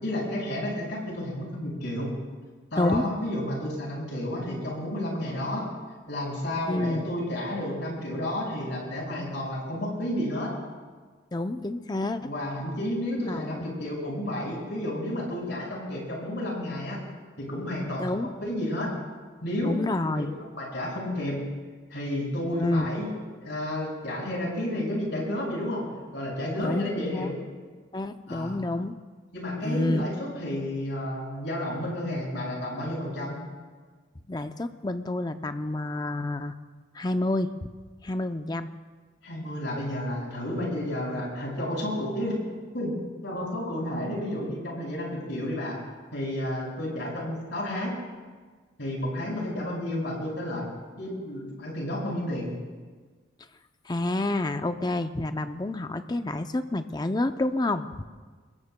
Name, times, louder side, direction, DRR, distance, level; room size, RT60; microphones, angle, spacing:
voice 1, 0.0-2.1 2.7-5.6 6.1-10.5 12.2-17.0 17.4-18.0 18.4-18.9 19.4-19.8 20.2-20.3 20.6-21.4 21.9-23.1 23.4-25.8 26.1-27.4 28.3-28.6 29.3-33.4 39.2-42.4 42.7-42.9 43.2-45.8 46.1-47.9 48.8-50.6 51.0-52.5, left 1 dB, 65° left, -3 dB, 6.2 m, -31 dB
voice 2, 6.7-7.0 11.3-12.2 13.2-13.7 18.0-18.3 19.6-20.3 22.6-22.9 26.6-27.3 27.9-28.9 29.6-30.1 34.3-36.5 36.9-37.5 38.0-38.7 53.9-58.0, left 2 dB, 20° left, 9 dB, 0.5 m, -28 dB
25.5 x 21.5 x 2.2 m, 1.5 s
head